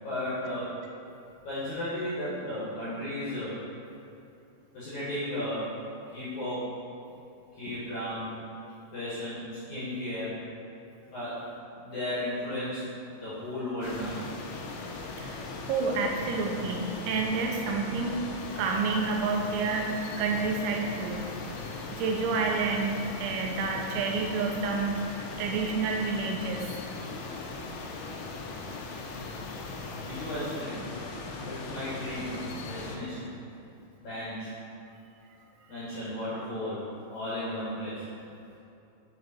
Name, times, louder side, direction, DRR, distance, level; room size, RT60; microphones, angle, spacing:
voice 1, 0.0-0.7 1.4-3.5 4.7-5.7 6.1-6.7 7.5-8.3 8.9-10.4 11.1-11.4 11.8-14.2 29.9-30.9 31.4-33.3 34.0-34.5 35.7-36.8 37.1-38.1, left 1 dB, 65° left, -10 dB, 1.9 m, -34 dB
sound 1, 13.8-33.0, left 3 dB, 80° left, 2.7 m, -39 dB
voice 2, 15.7-18.2 18.6-21.3 21.9-26.7, right 4 dB, 85° right, 1 dB, 3.0 m, -29 dB
8.3 x 4.4 x 4.3 m, 2.7 s
omnidirectional pair, 5.3 m